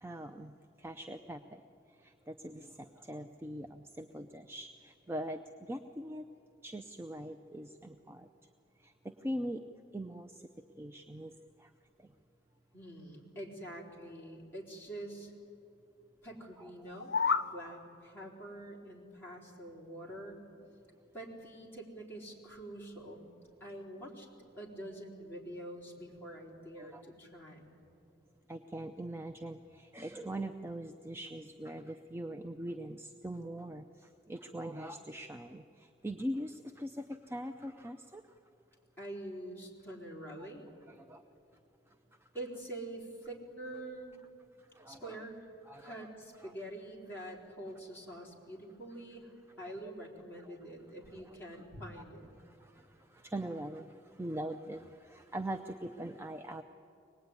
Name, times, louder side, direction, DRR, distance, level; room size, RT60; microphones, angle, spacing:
voice 1, 0.0-6.3 6.6-8.3 8.7-9.7 9.9-10.5 10.8-12.2 16.6-17.1 17.4-17.8 26.8-27.0 28.5-38.5 40.4-40.5 40.9-41.3 41.9-42.3 44.6-45.2 45.7-46.1 46.4-46.5 49.6-49.8 50.4-50.6 51.1-52.0 52.4-56.6, right 1 dB, 15° right, 5 dB, 0.6 m, -43 dB
voice 2, 12.7-15.3 16.2-17.1 17.5-20.4 21.1-23.3 23.6-24.3 24.6-27.7 39.0-40.6 42.3-44.1 44.9-45.3 45.8-49.3 49.6-52.3, right 1 dB, 10° left, -4 dB, 4.3 m, -46 dB
sound 1, 16.8-17.5, left 5 dB, 65° left, 0.8 m, -30 dB
24.0 x 19.5 x 9.7 m, 2.7 s
head